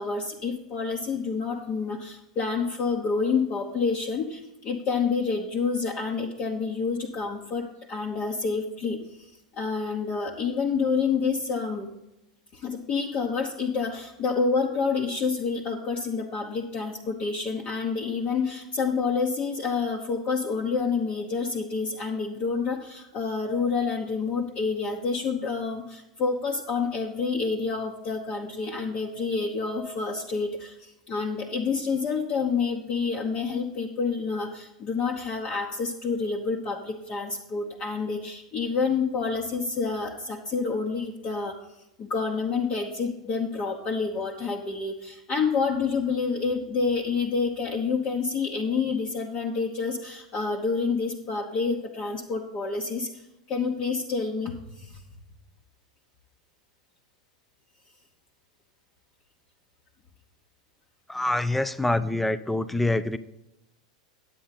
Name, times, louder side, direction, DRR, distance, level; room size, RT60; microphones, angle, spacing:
voice 1, 0.0-11.9 12.5-41.6 42.0-53.2 53.5-55.0, left 5 dB, 35° left, -1 dB, 1.1 m, -28 dB
voice 2, 61.1-63.2, left 2 dB, 5° left, 15 dB, 0.4 m, -25 dB
9.8 x 8.4 x 4.1 m, 0.89 s
figure-of-eight pair, 90°, 3 cm